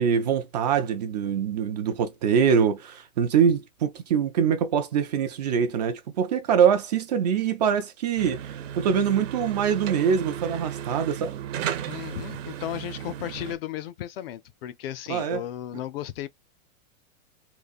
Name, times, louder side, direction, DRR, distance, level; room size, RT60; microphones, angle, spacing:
voice 1, 0.0-11.3 15.1-15.4, right 7 dB, 35° right, 0.4 m, -24 dB
sound 1, 8.2-13.5, right 10 dB, 60° right, 1.0 m, -34 dB
voice 2, 11.9-16.3, left 12 dB, 45° left, 0.5 m, -35 dB
3.8 x 2.5 x 2.4 m
hypercardioid pair, 150°, 42 cm